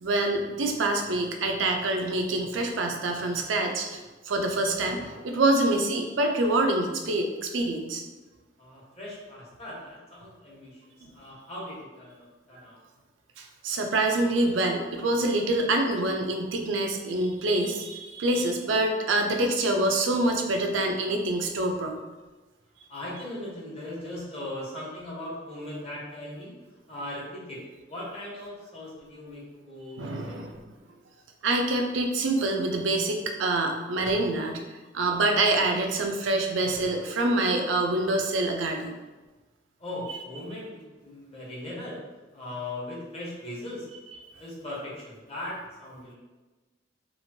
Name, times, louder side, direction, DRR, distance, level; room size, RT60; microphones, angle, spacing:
voice 1, 0.0-8.0 13.4-22.0 30.0-30.5 31.4-34.6 34.9-38.9, right 2 dB, 85° right, 3 dB, 0.4 m, -26 dB
voice 2, 8.6-12.8 22.9-26.5 26.9-30.3 39.8-42.0 42.3-43.9 44.4-46.2, left 1 dB, 35° left, -6 dB, 0.9 m, -39 dB
3.0 x 2.5 x 2.7 m, 1.2 s
head